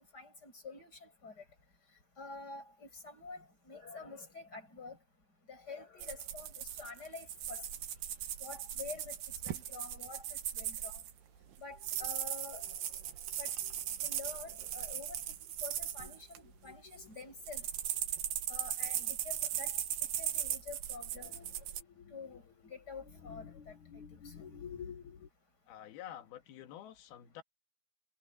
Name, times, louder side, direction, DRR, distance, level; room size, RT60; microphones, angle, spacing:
voice 1, 0.1-1.4 2.2-5.0 5.5-7.6 8.4-9.2 9.4-11.0 11.6-12.7 13.4-13.5 14.0-17.7 18.5-19.7 20.2-21.4 22.1-23.7 24.2-24.3, left 4 dB, 25° left, 8.5 m, -48 dB
Mechanical pencil mines, 6.0-11.1 11.8-16.4 16.9-21.8, right 11 dB, 85° right, 3.8 m, -38 dB
sound 1, 7.2-14.7, right 11 dB, 60° right, 3.1 m, -53 dB
sound 2, 11.7-14.1 14.6-14.8 15.3-15.4 15.6-17.3 18.0-18.1 18.9-19.1 21.1-25.3, left 7 dB, 55° left, 2.9 m, -53 dB
voice 2, 25.7-27.4, left 11 dB, 75° left, 3.5 m, -49 dB
omnidirectional pair, 4.6 m